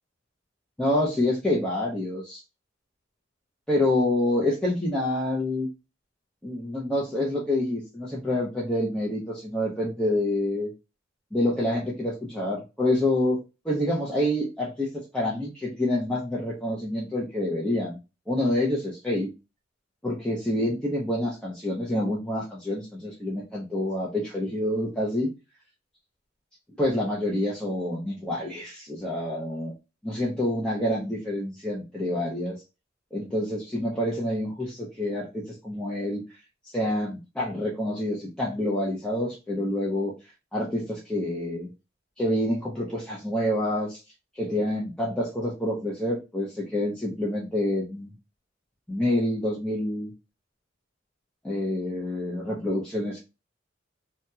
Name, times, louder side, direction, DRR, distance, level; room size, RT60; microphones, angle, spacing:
voice 1, 0.8-2.4 3.7-5.7 6.4-10.7 11.3-13.4 13.6-18.0 18.3-19.3 20.0-25.3 26.8-29.7 30.0-32.6 33.1-36.4 36.7-40.1 40.5-41.7 42.2-44.0 44.3-48.1 48.9-50.1 51.4-53.2, left 1 dB, 5° left, -6 dB, 0.6 m, -27 dB
2.8 x 2.8 x 2.2 m, 0.28 s
head